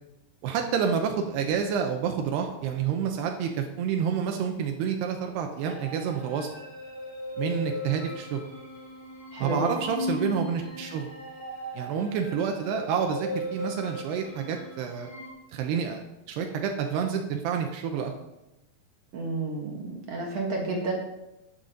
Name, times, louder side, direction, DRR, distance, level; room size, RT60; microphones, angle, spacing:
voice 1, 0.4-6.5 7.4-8.4 9.4-11.1 11.7-15.1 15.5-18.1, right 7 dB, 85° right, 3 dB, 2.9 m, -29 dB
sound 1, 5.6-15.3, left 2 dB, 80° left, 0.4 m, -37 dB
voice 2, 9.3-9.7 19.1-20.9, right 2 dB, 50° right, -1 dB, 2.2 m, -31 dB
11.5 x 8.9 x 3.8 m, 0.92 s
omnidirectional pair, 4.7 m